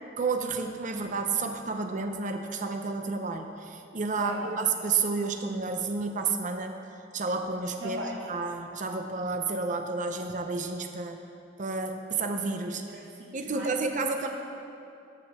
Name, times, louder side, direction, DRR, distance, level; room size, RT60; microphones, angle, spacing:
voice 1, 0.2-6.8 7.1-11.2 11.6-12.8 13.3-14.3, right 4 dB, 45° right, 5 dB, 0.6 m, -31 dB
voice 2, 4.1-4.5 7.8-8.3 12.9-13.7, equal, 70° right, -3 dB, 1.7 m, -38 dB
14.5 x 5.1 x 4.2 m, 2.6 s
head